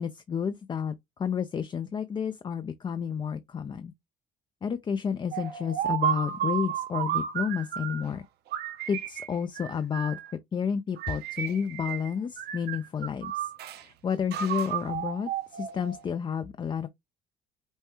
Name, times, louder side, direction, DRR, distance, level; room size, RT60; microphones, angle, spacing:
voice 1, 0.0-3.9 4.6-8.2 8.9-10.2 10.5-16.9, left 7 dB, 30° left, 0.4 m, -31 dB
sound 1, 5.3-8.1 8.5-10.3 11.0-12.1 12.4-13.8 14.3-16.1, right 10 dB, 75° right, 0.8 m, -32 dB
5.4 x 2.2 x 3.0 m
cardioid pair, 110°, 17 cm